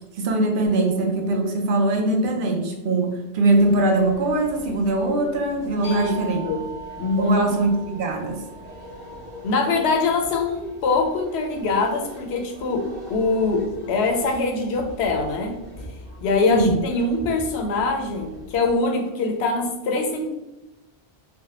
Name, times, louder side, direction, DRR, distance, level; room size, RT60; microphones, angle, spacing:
voice 1, 0.2-6.4 7.2-8.4 16.5-16.8, right 2 dB, 60° right, 3 dB, 0.7 m, -21 dB
sound 1, 0.7-10.4, right 2 dB, 35° left, 0.7 m, -43 dB
sound 2, 3.5-18.8, equal, 45° right, 1.1 m, -42 dB
voice 2, 5.8-6.2 6.4-6.7 7.0-7.4 9.4-15.6 16.2-20.3, left 3 dB, 85° left, 3 dB, 0.9 m, -23 dB
sound 3, 5.8-11.1, right 5 dB, 30° right, 1.3 m, -41 dB
3.3 x 2.1 x 2.8 m, 0.96 s
omnidirectional pair, 1.1 m